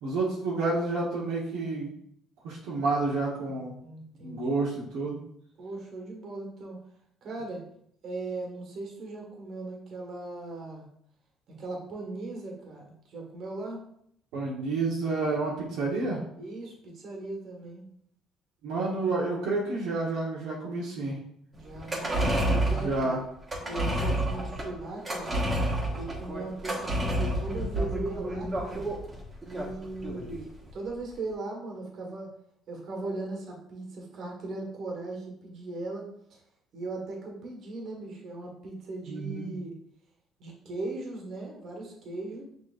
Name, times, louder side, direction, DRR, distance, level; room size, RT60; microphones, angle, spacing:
voice 1, 0.0-1.9 2.4-3.8 4.2-5.2 14.3-16.2 18.6-21.2 22.7-23.2 39.1-39.5, right 3 dB, 85° right, -5 dB, 1.1 m, -29 dB
voice 2, 3.5-4.7 5.6-6.8 7.2-7.6 8.0-10.9 11.5-13.8 16.4-17.9 21.5-22.1 22.4-23.1 23.6-25.4 25.9-28.9 29.5-32.3 32.7-36.4 36.7-39.7 40.4-42.4, right 2 dB, 60° right, 0 dB, 1.5 m, -38 dB
sound 1, 21.7-30.4 30.7-30.8, right 1 dB, 25° right, 1.4 m, -29 dB
6.2 x 3.1 x 2.5 m, 0.70 s
supercardioid pair, 85°, 0 cm